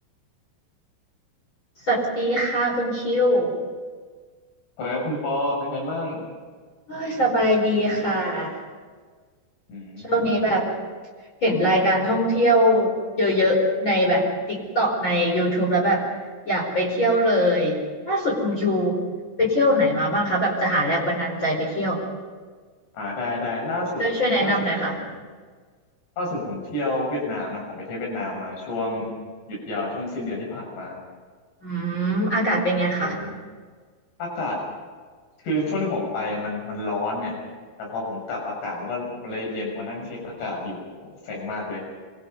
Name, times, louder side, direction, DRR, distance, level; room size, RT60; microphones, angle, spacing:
voice 1, 1.8-3.5 6.9-8.6 10.0-10.7 11.4-16.1 16.4-19.0 19.4-22.0 24.0-24.9 31.6-33.2, equal, 25° left, -3 dB, 5.1 m, -22 dB
voice 2, 4.8-6.2 9.7-10.2 22.9-24.0 24.4-24.5 24.8-25.1 26.2-29.1 29.5-31.0 33.0-33.4 34.2-34.6 35.4-37.4 37.8-40.8 41.2-41.8, left 2 dB, 70° left, -1 dB, 8.7 m, -29 dB
26.5 x 25.0 x 5.4 m, 1.5 s
omnidirectional pair, 5.3 m